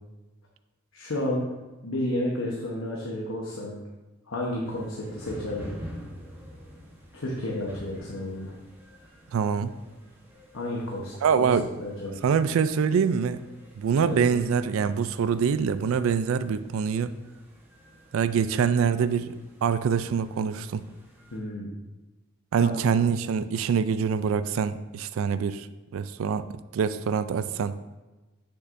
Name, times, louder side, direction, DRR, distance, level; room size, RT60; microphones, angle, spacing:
voice 1, 0.9-1.5 1.8-3.7 4.3-5.7 7.1-8.5 10.5-11.5 11.8-12.2 14.2-14.3 21.3-21.7 22.6-22.8, left 1 dB, 75° left, -3 dB, 1.0 m, -31 dB
sound 1, 4.6-21.4, equal, 10° right, 1.1 m, -48 dB
voice 2, 9.3-9.7 11.2-11.7 12.2-13.4 13.8-17.2 18.1-19.4 19.6-20.8 22.5-25.7 25.9-26.5 26.7-27.8, right 6 dB, 75° right, 13 dB, 0.3 m, -25 dB
8.0 x 6.5 x 2.6 m, 1.1 s
head